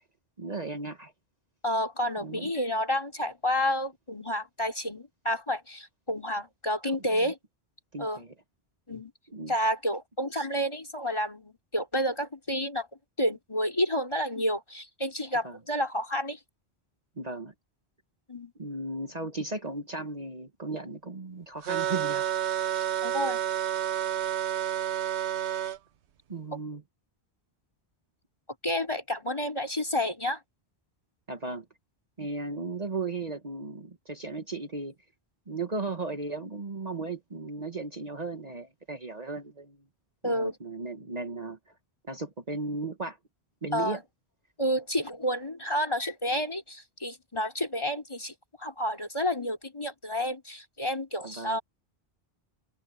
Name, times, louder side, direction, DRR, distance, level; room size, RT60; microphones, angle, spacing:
voice 1, 0.4-1.1 2.2-2.5 7.9-8.3 9.3-9.5 15.4-15.6 17.2-17.5 18.6-22.9 26.3-26.8 31.3-31.7 32.2-34.9 35.5-39.8 40.2-41.6 42.1-43.2 43.6-44.0 51.2-51.6, right 3 dB, 40° right, 1.4 m, -36 dB
voice 2, 1.6-7.4 8.0-8.2 8.9-9.1 9.5-12.9 13.2-16.4 18.3-18.5 23.0-23.4 28.6-30.4 40.2-40.6 43.7-44.0 44.6-51.6, equal, 25° left, 3.7 m, -30 dB
sound 1, 21.7-25.8, right 10 dB, 90° right, 1.1 m, -29 dB
omnidirectional pair, 1.1 m